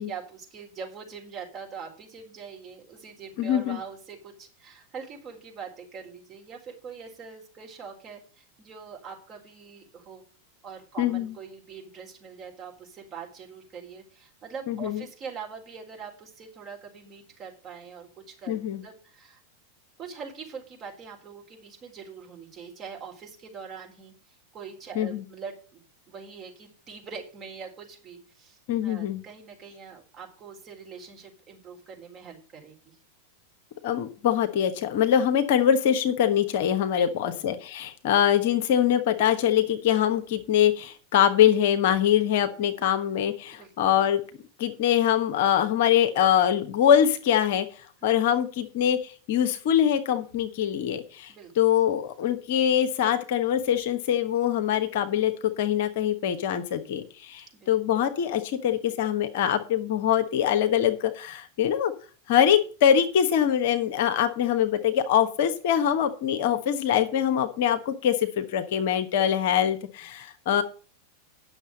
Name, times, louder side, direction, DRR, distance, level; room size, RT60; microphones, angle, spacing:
voice 1, 0.0-10.2 10.6-19.4 20.0-33.0 37.0-37.4 42.8-42.9 43.5-44.0 48.0-48.1 51.3-51.5 57.5-57.7, right 6 dB, 30° right, 0 dB, 3.9 m, -43 dB
voice 2, 3.4-3.8 11.0-11.3 14.7-15.0 18.5-18.8 24.9-25.2 28.7-29.2 33.8-44.2 44.6-47.7 48.0-61.9 62.3-70.6, left 9 dB, 50° left, 8 dB, 1.1 m, -23 dB
9.8 x 6.6 x 6.6 m, 0.38 s
figure-of-eight pair, 90°, 0 cm